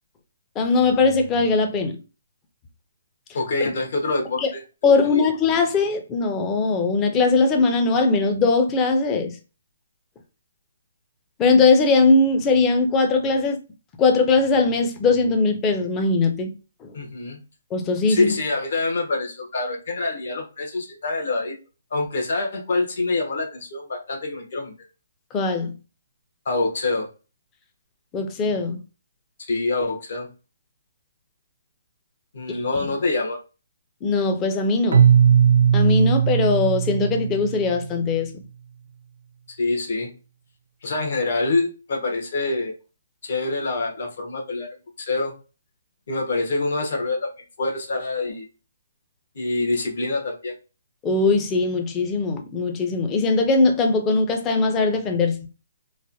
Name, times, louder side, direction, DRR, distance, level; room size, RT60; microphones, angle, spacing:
voice 1, 0.6-2.0 3.6-3.7 4.4-4.5 4.8-9.4 11.4-13.6 14.0-16.5 16.8-16.9 17.7-18.3 25.3-25.7 28.1-28.8 32.5-32.6 34.0-35.1 35.7-38.3 51.0-55.4, left 3 dB, 15° left, 0.4 m, -20 dB
voice 2, 3.3-4.4 4.8-5.2 16.9-17.4 18.1-21.6 21.9-24.7 26.4-27.1 29.5-30.3 32.3-33.4 39.6-40.1 40.8-42.7 43.2-44.7 45.0-45.3 46.1-47.3 47.6-48.5 49.3-50.6, left 3 dB, 60° left, 1.0 m, -25 dB
Keyboard (musical), 34.9-37.9, right 8 dB, 65° right, 0.4 m, -18 dB
3.2 x 2.1 x 2.5 m
hypercardioid pair, 155°, 0 cm